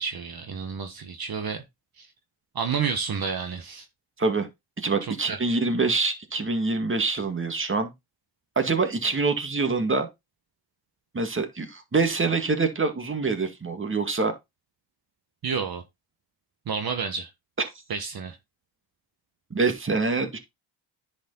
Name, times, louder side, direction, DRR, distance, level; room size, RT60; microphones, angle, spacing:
voice 1, 0.0-1.6 2.0-2.1 2.5-3.9 5.0-5.6 15.4-15.8 16.7-17.3 17.9-18.4, right 6 dB, 50° right, 1.5 m, -30 dB
voice 2, 4.8-7.9 8.6-10.1 11.1-14.3 19.5-20.4, right 3 dB, 25° right, 2.1 m, -25 dB
10.5 x 5.4 x 4.0 m
cardioid pair, 90°, 47 cm